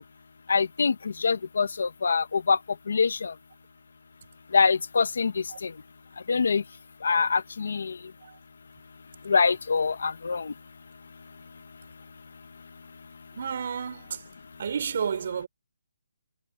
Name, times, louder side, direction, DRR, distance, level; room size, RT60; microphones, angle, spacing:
voice 1, 0.5-0.9 1.2-2.6 2.9-3.3 4.5-5.3 5.6-5.7 6.3-6.6 7.0-7.9 9.3-10.5, left 5 dB, 55° left, 1.5 m, -24 dB
voice 2, 13.3-14.2 14.6-15.5, right 7 dB, 40° right, 6.3 m, -31 dB
hypercardioid pair, 175°, 0 cm